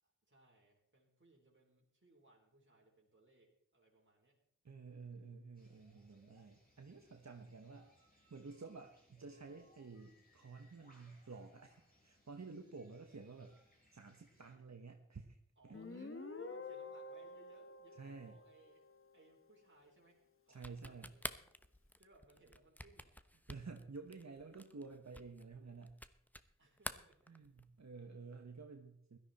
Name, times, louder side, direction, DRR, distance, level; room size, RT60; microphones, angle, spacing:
voice 1, 0.0-4.4 13.5-13.7 15.6-23.3 26.6-27.2, right 2 dB, 40° right, -2 dB, 4.4 m, -67 dB
voice 2, 4.6-13.6 13.9-15.4 18.0-18.3 20.5-21.1 23.5-26.0 27.3-29.2, right 4 dB, 60° right, 4 dB, 1.3 m, -52 dB
sound 1, 5.5-14.5, equal, 30° left, 7.0 m, -71 dB
Guitar, 15.7-19.2, left 3 dB, 45° left, 1.4 m, -49 dB
sound 2, 20.5-26.5 26.8-27.8, equal, 5° left, 0.9 m, -49 dB
16.5 x 13.0 x 4.3 m, 0.71 s
wide cardioid pair, 45°, 31 cm